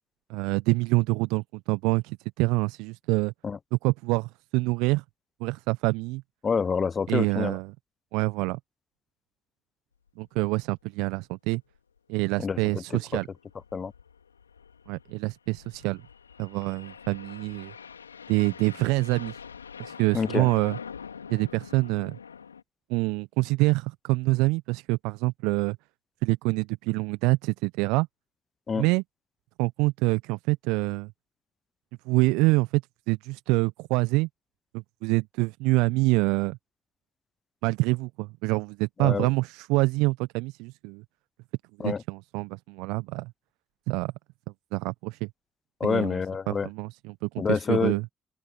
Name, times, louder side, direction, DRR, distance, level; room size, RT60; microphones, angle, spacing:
voice 1, 0.3-3.3 3.8-5.0 5.4-6.2 7.1-7.7 8.1-8.6 10.2-11.6 12.1-13.3 14.9-16.0 16.4-17.7 18.3-19.4 19.8-20.8 21.3-22.2 22.9-25.8 26.2-28.1 28.8-29.0 29.6-31.1 32.1-32.8 33.1-34.3 35.0-36.6 37.6-41.0 41.8-43.3 43.9-44.1 44.7-45.3 45.8-46.2 46.5-48.0, right 24 dB, 70° right, 1.0 m, -26 dB
voice 2, 6.4-7.6 12.4-13.2 13.7-13.9 20.1-20.5 28.7-28.9 39.0-39.3 41.8-42.0 45.8-46.7 47.4-48.1, left 5 dB, 40° left, 0.7 m, -27 dB
sound 1, 10.2-10.4 10.7-10.8 11.1-11.2 11.7-12.0 13.3-22.6, left 6 dB, 90° left, 3.4 m, -44 dB
open air
figure-of-eight pair, 40°, 0 cm